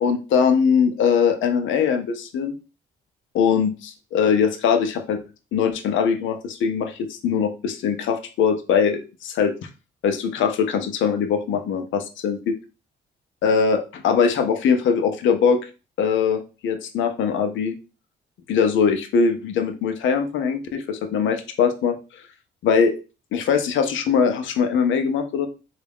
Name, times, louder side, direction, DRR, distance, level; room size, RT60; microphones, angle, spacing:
voice 1, 0.0-2.5 3.3-5.2 5.5-9.5 10.0-12.5 13.4-15.7 16.0-17.7 18.5-21.9 22.6-22.9 23.3-25.5, left 6 dB, 75° left, 7 dB, 0.6 m, -21 dB
3.4 x 2.4 x 3.5 m, 0.32 s
cardioid pair, 90°, 20 cm